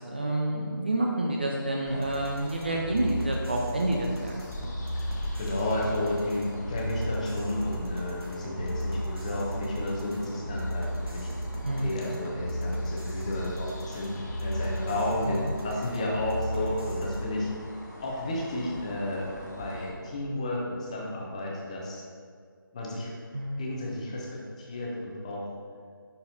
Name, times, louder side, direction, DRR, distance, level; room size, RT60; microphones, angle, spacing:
voice 1, 0.0-4.4 11.6-12.0 15.3-15.5 23.3-23.7, right 1 dB, 25° right, 0 dB, 0.4 m, -29 dB
sound 1, 1.9-19.9, left 1 dB, 50° left, 1.1 m, -43 dB
sound 2, 2.0-17.2, equal, 85° right, 1.3 m, -34 dB
voice 2, 5.0-17.5 18.0-22.0 22.7-23.1 23.6-25.5, left 1 dB, 20° left, -3 dB, 0.7 m, -32 dB
10.0 x 4.2 x 2.7 m, 2.1 s
figure-of-eight pair, 160°, 12 cm